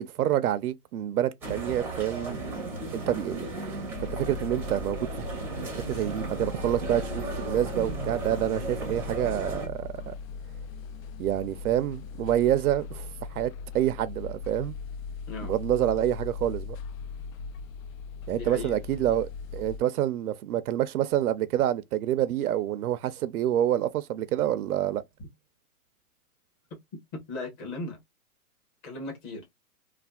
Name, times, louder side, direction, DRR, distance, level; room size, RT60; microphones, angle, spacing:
voice 1, 0.0-2.4 2.9-3.8 4.1-5.3 5.9-10.1 11.2-14.7 15.4-16.8 18.3-25.0, right 12 dB, 75° right, 0.6 m, -27 dB
sound 1, 1.4-9.7, right 3 dB, 5° right, 0.6 m, -36 dB
sound 2, 3.9-19.8, left 5 dB, 60° left, 0.6 m, -39 dB
voice 2, 18.4-18.8 27.1-28.0 28.8-29.4, left 2 dB, 30° left, 1.4 m, -37 dB
3.3 x 2.3 x 2.2 m
hypercardioid pair, 150°, 45 cm